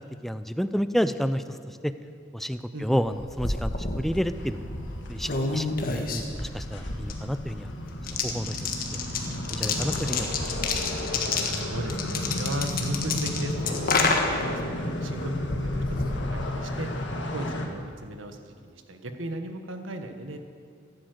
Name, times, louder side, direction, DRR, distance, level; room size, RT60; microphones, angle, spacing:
voice 1, 0.0-1.9 2.3-4.6 5.1-7.7 8.2-8.9 9.5-10.7, equal, ahead, 11 dB, 0.4 m, -30 dB
sound 1, 3.0-17.0, left 3 dB, 45° left, 1.6 m, -30 dB
sound 2, 4.1-17.7, left 1 dB, 65° left, 1.9 m, -33 dB
voice 2, 11.3-14.1 14.4-14.6 14.9-15.8 16.3-16.9 17.3-20.4, right 1 dB, 80° right, 6 dB, 1.5 m, -36 dB
15.5 x 11.5 x 7.9 m, 2.2 s
head